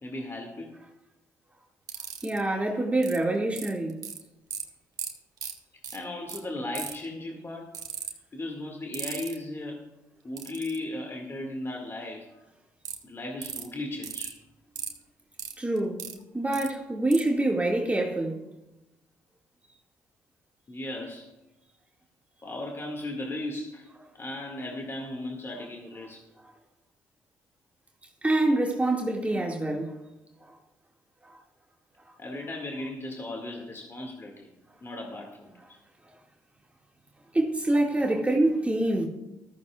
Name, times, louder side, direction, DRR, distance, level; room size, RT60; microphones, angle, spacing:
voice 1, 0.0-0.7 5.9-7.7 8.3-9.8 10.2-12.3 13.0-14.4 20.7-21.3 22.4-23.9 24.1-26.2 29.3-29.4 32.2-34.5 34.8-35.8, left 2 dB, 35° left, 2.1 m, -36 dB
sound 1, 1.9-2.4 3.0-3.2 3.6-4.2 4.5-4.6 5.0-5.1 5.4-5.5 5.8-6.0 6.3-6.4 6.7-7.0 7.7-8.1 8.9-9.3 10.4-10.8 12.8-13.0 13.4-13.6 14.0-14.3 14.8-14.9 15.4-16.1 16.5-16.7 17.1-17.2, right 7 dB, 55° right, 1.8 m, -35 dB
voice 2, 2.2-4.0 15.6-16.1 16.3-18.4 28.2-30.0 31.3-31.4 37.3-39.1, right 2 dB, 15° right, 2.1 m, -26 dB
14.5 x 14.0 x 2.4 m
hypercardioid pair, 50°, 8 cm